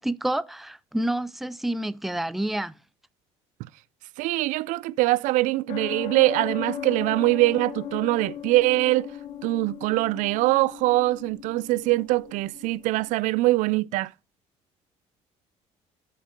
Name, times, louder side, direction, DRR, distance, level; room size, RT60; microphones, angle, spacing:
voice 1, 0.0-2.7, right 1 dB, ahead, 0.5 m, -28 dB
voice 2, 4.2-9.1 9.4-14.1, right 19 dB, 75° right, 0.4 m, -23 dB
sound 1, 5.7-13.1, left 8 dB, 80° left, 1.2 m, -37 dB
9.9 x 5.2 x 3.7 m
cardioid pair, 115°, 13 cm